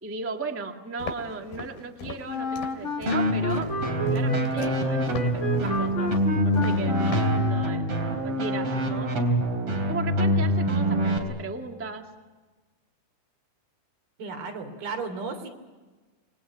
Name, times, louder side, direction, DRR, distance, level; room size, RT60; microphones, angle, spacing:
voice 1, 0.0-3.7 4.1-6.2 6.4-7.8 8.2-9.1 9.9-12.1, right 3 dB, 10° right, 2 dB, 0.6 m, -36 dB
Walk footsteps, 1.0-7.4, left 5 dB, 80° left, 4.3 m, -41 dB
Wind instrument woodwind instrument, 2.3-8.0, left 2 dB, 55° left, 0.8 m, -31 dB
sound 1, 3.1-11.2, equal, 40° right, 4.5 m, -25 dB
voice 2, 14.2-15.5, right 4 dB, 80° right, 5 dB, 5.2 m, -34 dB
28.0 x 22.5 x 8.8 m, 1.3 s
omnidirectional pair, 4.3 m